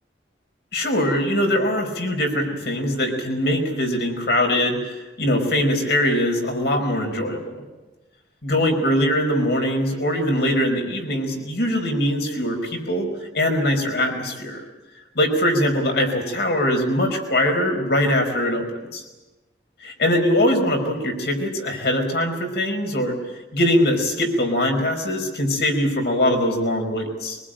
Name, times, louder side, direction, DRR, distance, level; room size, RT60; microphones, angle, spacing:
voice 1, 0.7-7.6 8.4-13.1 13.3-14.6 15.1-18.7 18.9-19.0 19.8-23.1 23.5-27.4, left 1 dB, 65° left, 3 dB, 4.9 m, -22 dB
23.5 x 20.5 x 9.0 m, 1.1 s
head